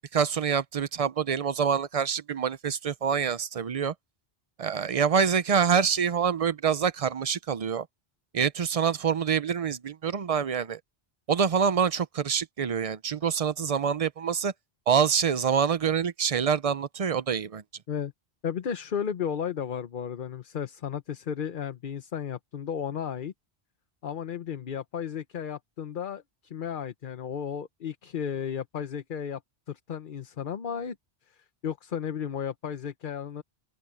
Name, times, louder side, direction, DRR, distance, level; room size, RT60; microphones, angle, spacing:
voice 1, 0.1-3.9 4.6-7.9 8.3-10.8 11.3-14.5 14.9-17.6, right 7 dB, 40° right, 0.6 m, -26 dB
voice 2, 18.4-23.3 24.0-29.4 29.7-31.0 31.3-33.4, left 8 dB, 55° left, 0.9 m, -34 dB
open air
omnidirectional pair, 1.1 m